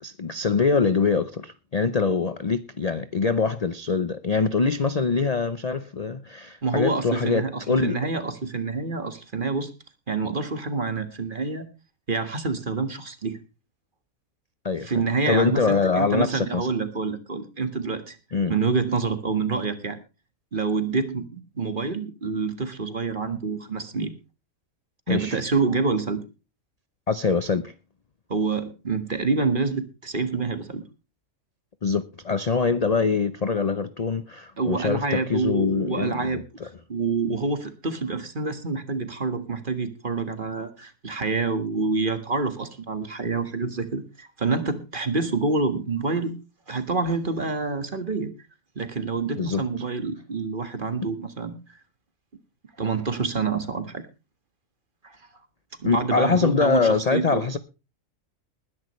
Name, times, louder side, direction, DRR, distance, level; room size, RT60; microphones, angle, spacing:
voice 1, 0.0-8.0 14.6-14.9 15.3-16.7 18.3-18.5 25.1-25.4 27.1-27.7 31.8-36.7 49.4-49.7 55.8-57.6, left 4 dB, 40° left, 0.6 m, -24 dB
voice 2, 6.6-9.7 10.1-11.7 12.1-13.4 14.8-18.2 18.5-20.0 20.5-24.1 25.1-26.2 28.3-30.8 34.6-36.4 36.9-46.3 46.7-48.3 48.8-51.6 52.8-54.0 55.0-55.2 55.8-57.4, right 4 dB, 35° right, 1.7 m, -27 dB
20.5 x 10.5 x 3.2 m
omnidirectional pair, 1.5 m